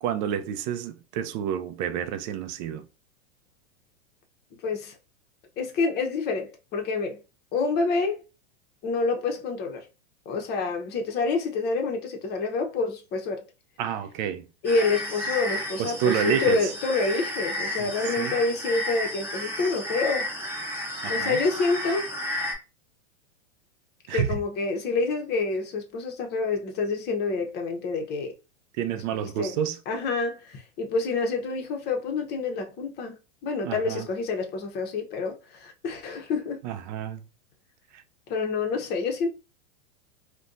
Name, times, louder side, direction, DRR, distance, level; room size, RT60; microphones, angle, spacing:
voice 1, 0.0-2.9 13.8-14.5 15.8-16.7 17.8-17.9 18.2-18.4 21.0-21.4 24.1-24.4 28.8-29.8 33.6-34.1 36.6-37.3 37.9-38.0, right 9 dB, 40° right, 0.5 m, -29 dB
voice 2, 4.6-5.0 5.6-7.2 7.5-8.2 8.8-9.9 10.3-13.4 14.6-20.3 21.1-22.1 24.1-28.3 29.4-29.5 29.9-33.2 33.4-36.6 38.3-39.3, left 4 dB, 30° left, 0.8 m, -27 dB
sound 1, 14.6-22.5, left 1 dB, 5° right, 0.8 m, -32 dB
2.5 x 2.2 x 3.7 m
hypercardioid pair, 130°, 35 cm